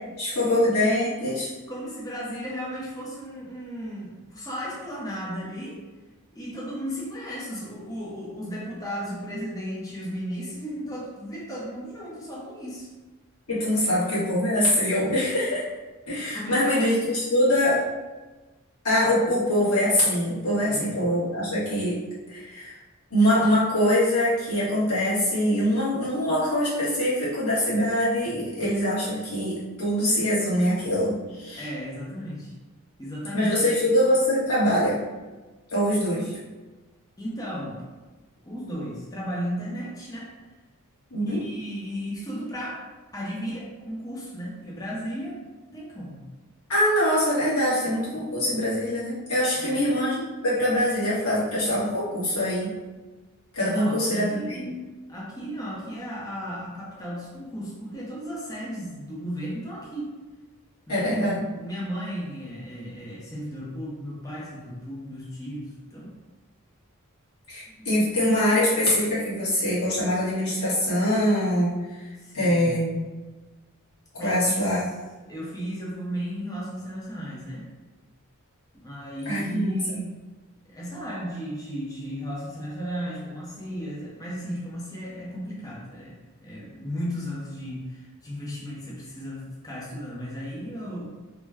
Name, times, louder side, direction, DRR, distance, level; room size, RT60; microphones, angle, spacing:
voice 1, 0.2-1.5 13.5-15.7 16.1-17.8 18.8-22.0 22.3-22.8 23.1-31.6 33.3-35.0 35.7-36.4 41.1-41.4 46.7-52.7 53.5-54.7 60.9-61.5 67.5-72.1 72.3-73.0 74.1-74.8 79.2-80.0, equal, 85° left, -10 dB, 1.4 m, -23 dB
voice 2, 1.7-5.8 6.3-12.9 16.3-16.8 20.7-20.9 31.6-32.5 33.0-33.9 36.1-36.2 37.2-37.8 38.4-40.3 41.3-42.9 43.1-46.2 49.6-49.9 53.6-54.7 55.1-60.2 60.9-66.1 67.7-67.9 72.2-72.8 74.2-74.8 75.3-77.7 78.8-80.2 80.7-86.2 86.4-91.1, equal, 15° left, -5 dB, 0.7 m, -35 dB
3.1 x 2.2 x 3.4 m, 1.2 s
head